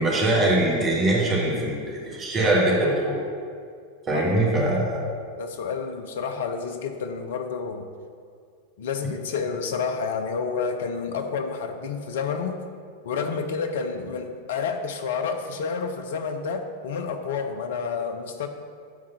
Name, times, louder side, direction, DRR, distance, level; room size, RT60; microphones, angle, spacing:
voice 1, 0.0-3.2 4.1-5.1, right 1 dB, 25° right, -4 dB, 1.6 m, -22 dB
voice 2, 5.4-7.9 8.8-12.6 13.0-18.5, left 5 dB, 60° left, 7 dB, 0.6 m, -29 dB
9.5 x 3.7 x 5.7 m, 2.3 s
figure-of-eight pair, 90°, 0 cm